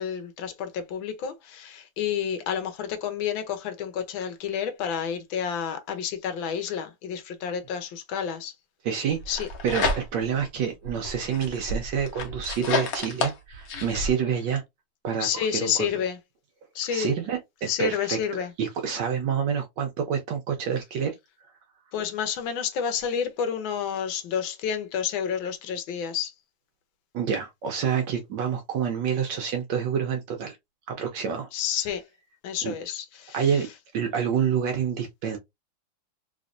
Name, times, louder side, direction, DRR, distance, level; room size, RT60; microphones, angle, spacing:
voice 1, 0.0-8.5 9.3-9.5 15.2-16.2 16.7-17.1 17.7-18.5 21.9-26.3 31.5-32.0 32.4-33.5, left 8 dB, 85° left, 1.5 m, -30 dB
voice 2, 8.8-14.6 15.0-15.7 16.9-18.2 18.6-21.2 27.1-30.6 30.9-31.5 32.6-32.7 33.3-33.7 33.9-35.4, right 7 dB, 70° right, 1.2 m, -28 dB
sound 1, 9.2-10.4 10.8-14.1, left 3 dB, 55° left, 1.2 m, -30 dB
3.4 x 3.1 x 2.5 m
omnidirectional pair, 2.1 m